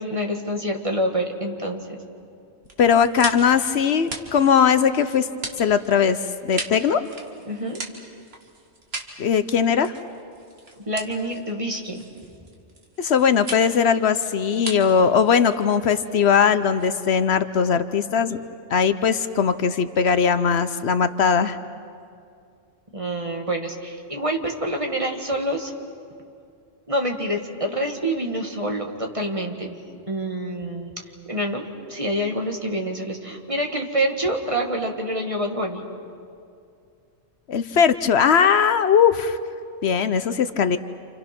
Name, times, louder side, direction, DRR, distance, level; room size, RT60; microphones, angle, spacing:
voice 1, 0.0-2.0 7.5-7.8 10.9-12.1 22.9-25.7 26.9-29.8 30.1-30.9 31.3-35.9, right 1 dB, 30° right, 2 dB, 1.9 m, -27 dB
sound 1, 2.6-17.3, right 2 dB, 60° right, 2.3 m, -38 dB
voice 2, 2.8-5.3 5.6-7.0 9.2-9.9 13.0-18.4 18.7-21.6 37.5-39.4 39.8-40.8, left 7 dB, 70° left, 11 dB, 1.0 m, -19 dB
29.5 x 28.0 x 6.0 m, 2.4 s
omnidirectional pair, 1.2 m